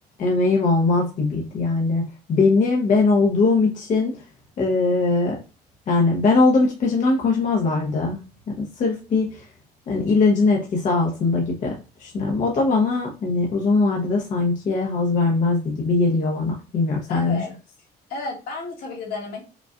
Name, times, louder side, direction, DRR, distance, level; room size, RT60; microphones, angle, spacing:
voice 1, 0.2-4.2 4.6-5.4 5.9-9.5 9.9-17.5, left 3 dB, 45° left, -1 dB, 0.8 m, -21 dB
voice 2, 17.1-17.5 18.1-19.4, left 3 dB, 70° left, -2 dB, 1.5 m, -32 dB
5.1 x 2.4 x 2.4 m, 0.32 s
cardioid pair, 110°, 17 cm